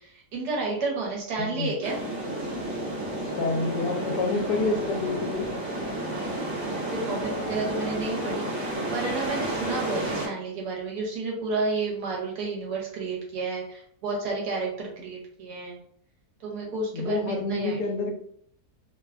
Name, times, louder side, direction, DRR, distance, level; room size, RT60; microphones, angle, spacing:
voice 1, 0.0-2.0 6.1-15.8 16.4-17.8, right 3 dB, 80° right, -2 dB, 1.4 m, -31 dB
voice 2, 1.4-1.7 3.4-5.5 16.9-18.1, left 3 dB, 80° left, 3 dB, 1.1 m, -28 dB
sound 1, 1.8-10.3, right 1 dB, 50° right, 1.2 m, -31 dB
3.2 x 2.2 x 2.3 m, 0.65 s
omnidirectional pair, 1.7 m